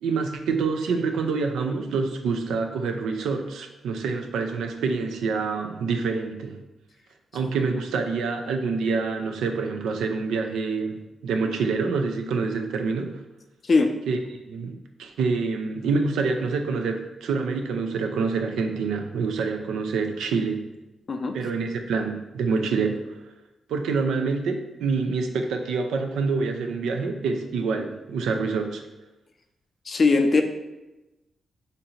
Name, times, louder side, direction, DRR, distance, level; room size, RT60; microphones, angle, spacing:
voice 1, 0.0-6.6 7.3-13.2 14.1-14.2 14.5-20.7 21.3-23.0 23.7-28.8, right 4 dB, 90° right, 5 dB, 0.4 m, -26 dB
voice 2, 29.9-30.4, left 3 dB, 50° left, 5 dB, 0.4 m, -20 dB
2.7 x 2.6 x 4.2 m, 1.0 s
cardioid pair, 65°, 0 cm